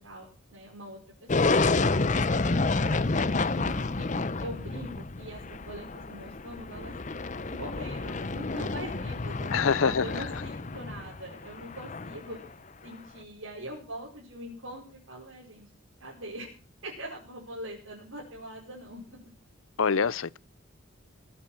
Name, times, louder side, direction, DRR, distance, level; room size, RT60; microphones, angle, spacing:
voice 1, 0.0-4.1 4.4-7.0 7.5-12.4 12.8-15.7 16.0-16.5 16.8-19.2, right 1 dB, 85° right, 5.3 m, -43 dB
sound 1, 1.3-12.5, left 3 dB, 35° left, 0.7 m, -29 dB
voice 2, 9.5-10.0 19.8-20.4, left 6 dB, 85° left, 0.6 m, -24 dB
20.0 x 8.8 x 6.2 m
head